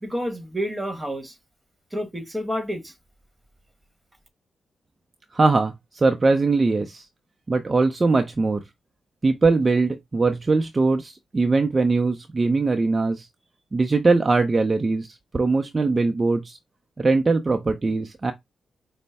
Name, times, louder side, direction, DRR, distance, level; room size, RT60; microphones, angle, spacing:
voice 1, 0.0-1.3 1.9-2.9, equal, 15° right, 1.4 m, -29 dB
voice 2, 5.3-7.0 7.5-8.6 9.2-13.3 13.7-15.1 15.3-16.6 17.0-18.3, right 3 dB, 35° right, 0.5 m, -21 dB
5.1 x 2.1 x 3.4 m
supercardioid pair, 50°, 0 cm